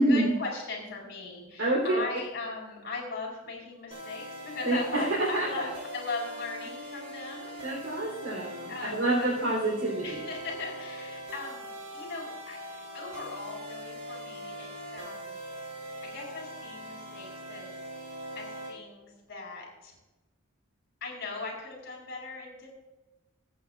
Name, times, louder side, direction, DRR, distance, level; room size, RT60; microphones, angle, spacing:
voice 1, 0.0-7.9 8.7-9.3 10.0-15.4 16.0-17.7 18.3-19.9 21.0-22.7, left 3 dB, 50° left, -4 dB, 4.3 m, -39 dB
voice 2, 1.6-2.0 4.6-5.5 7.6-10.2, right 1 dB, 60° right, -4 dB, 3.5 m, -27 dB
sound 1, 3.9-18.7, right 1 dB, 30° right, 4.3 m, -42 dB
24.5 x 8.6 x 2.5 m, 1.1 s
head